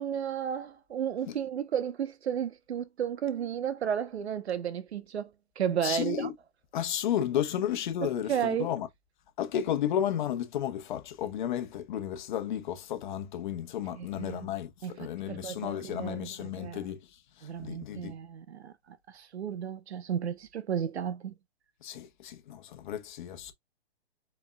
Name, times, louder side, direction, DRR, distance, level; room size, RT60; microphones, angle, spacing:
voice 1, 0.0-5.3 5.6-6.3 8.0-8.7 13.9-14.5 14.8-16.8 17.4-21.3, right 8 dB, 85° right, 1.0 m, -33 dB
voice 2, 5.8-6.3 6.7-8.9 9.4-17.0 17.4-18.1 21.8-23.5, left 10 dB, 50° left, 1.1 m, -33 dB
5.0 x 4.5 x 2.3 m
hypercardioid pair, 155°, 32 cm